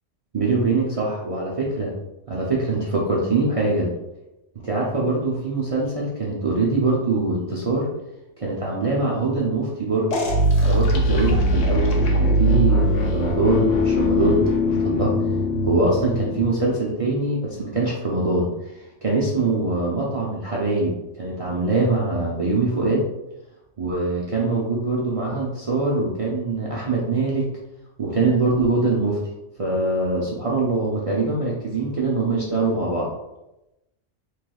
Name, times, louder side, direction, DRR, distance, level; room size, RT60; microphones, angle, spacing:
voice 1, 0.3-1.9 2.3-3.9 4.6-7.9 8.4-10.2 10.6-15.1 15.6-18.5 19.0-23.0 23.8-27.5 28.0-29.2 29.6-33.1, right 3 dB, 60° right, -5 dB, 0.3 m, -23 dB
sound 1, 10.1-16.7, equal, 85° left, 1.0 m, -21 dB
3.2 x 3.0 x 2.2 m, 0.93 s
omnidirectional pair, 1.3 m